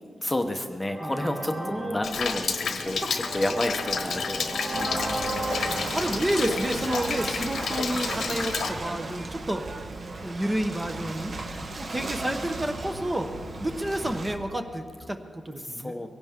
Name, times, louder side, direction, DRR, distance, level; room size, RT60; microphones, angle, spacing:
voice 1, 0.2-5.1 5.7-6.0 15.6-16.1, left 1 dB, 10° left, 4 dB, 0.9 m, -31 dB
sound 1, 0.8-7.6, right 1 dB, 85° right, 4.8 m, -36 dB
voice 2, 1.0-2.0 2.9-3.0 4.5-5.3 5.9-9.6 10.2-11.4 11.8-13.3 13.6-15.9, right 1 dB, 15° right, 5 dB, 1.0 m, -30 dB
Rain, 2.0-8.7, left 5 dB, 85° left, 1.2 m, -31 dB
Ocean / Boat Water vehicle, 4.7-14.3, right 2 dB, 45° right, 1.2 m, -36 dB
22.5 x 17.5 x 3.7 m, 2.1 s
wide cardioid pair, 125°, 0 cm